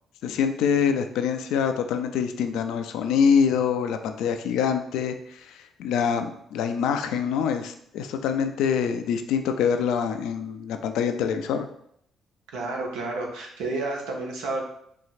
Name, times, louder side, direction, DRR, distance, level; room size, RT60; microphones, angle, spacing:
voice 1, 0.2-11.7, left 7 dB, 60° left, 7 dB, 0.3 m, -25 dB
voice 2, 12.5-14.6, right 2 dB, 65° right, 0 dB, 0.7 m, -30 dB
4.2 x 3.1 x 2.5 m, 0.70 s
figure-of-eight pair, 45°, 0 cm